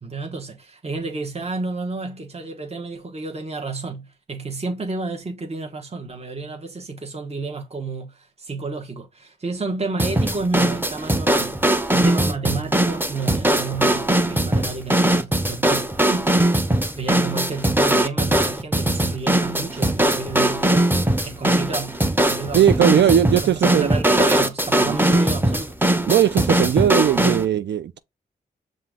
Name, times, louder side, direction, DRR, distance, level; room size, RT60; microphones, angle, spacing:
voice 1, 0.0-16.3 17.0-22.0 22.2-25.7 27.1-27.2, right 3 dB, 35° right, 1.1 m, -31 dB
sound 1, 10.0-27.5, right 1 dB, 10° right, 0.8 m, -20 dB
voice 2, 22.5-23.9 24.9-25.0 26.1-28.0, right 9 dB, 70° right, 0.4 m, -18 dB
5.6 x 2.5 x 3.6 m
supercardioid pair, 40°, 19 cm